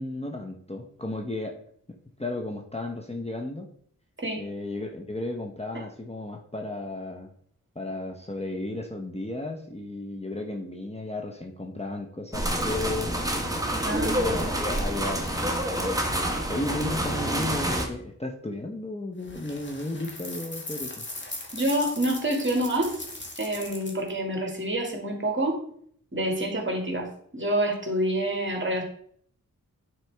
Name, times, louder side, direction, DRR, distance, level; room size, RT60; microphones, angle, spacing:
voice 1, 0.0-1.6 2.2-3.7 4.4-7.3 7.7-13.2 14.0-15.3 15.8-16.0 16.2-21.0, left 2 dB, 20° left, 1 dB, 0.9 m, -34 dB
sound 1, 12.3-17.9, equal, 10° right, 1.2 m, -27 dB
voice 2, 13.8-14.4 21.5-23.0 23.4-25.6 26.1-28.8, right 1 dB, 35° right, 0 dB, 2.1 m, -27 dB
sound 2, 19.2-24.1, left 2 dB, 35° left, 1.5 m, -39 dB
9.3 x 4.5 x 3.4 m, 0.62 s
wide cardioid pair, 50°, 33 cm